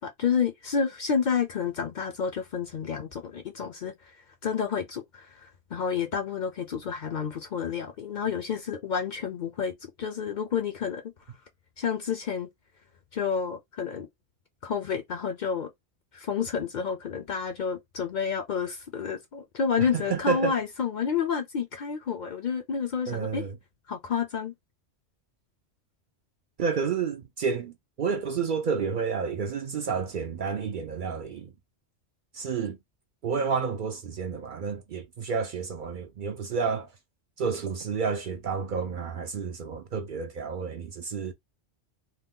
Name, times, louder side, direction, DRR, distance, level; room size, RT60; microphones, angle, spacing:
voice 1, 0.0-3.9 4.4-9.7 10.0-11.1 11.8-12.5 13.1-14.1 14.6-15.7 16.1-23.4 23.9-24.5, left 6 dB, 55° left, 0.6 m, -30 dB
voice 2, 19.8-20.6 23.1-23.6 26.6-31.5 32.3-32.8 33.2-36.9 37.4-41.3, right 5 dB, 60° right, 0.6 m, -30 dB
2.8 x 2.1 x 3.5 m
omnidirectional pair, 1.1 m